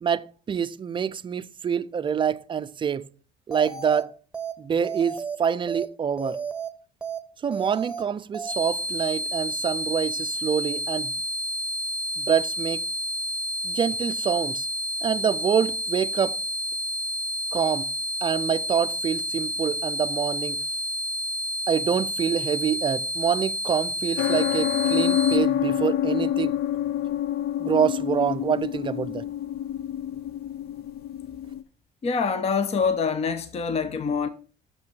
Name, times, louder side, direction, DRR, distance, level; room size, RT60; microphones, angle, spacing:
voice 1, 0.0-3.0 3.5-4.1 4.6-6.4 7.4-11.2 12.2-12.8 13.6-14.7 15.0-16.4 17.5-17.9 18.2-20.6 21.7-26.6 27.6-29.3, right 7 dB, 30° right, 0.4 m, -26 dB
sound 1, 3.5-4.0 4.3-4.5 4.8-5.4 5.7-5.9 6.2-6.7 7.0-7.2 7.5-8.0 8.3-8.5, right 6 dB, 5° right, 1.1 m, -32 dB
sound 2, 8.5-25.4, equal, 15° left, 1.3 m, -30 dB
sound 3, 24.2-31.6, left 11 dB, 70° left, 0.7 m, -27 dB
voice 2, 32.0-34.3, left 5 dB, 40° left, 0.8 m, -25 dB
6.7 x 5.9 x 6.2 m
cardioid pair, 110°, 17 cm